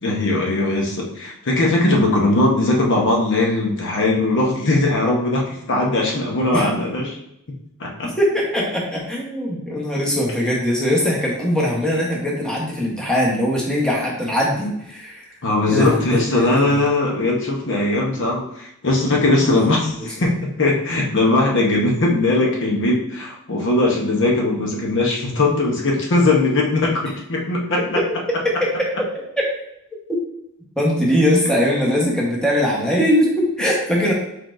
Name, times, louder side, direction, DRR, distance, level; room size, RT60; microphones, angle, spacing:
voice 1, 0.0-7.2 7.8-8.1 15.4-27.8, left 2 dB, 55° left, -1 dB, 0.9 m, -19 dB
voice 2, 8.0-15.2 15.7-16.2 16.7-16.8 19.4-19.5 30.8-34.1, equal, 5° left, -4 dB, 1.1 m, -21 dB
4.5 x 4.2 x 2.6 m, 0.77 s
head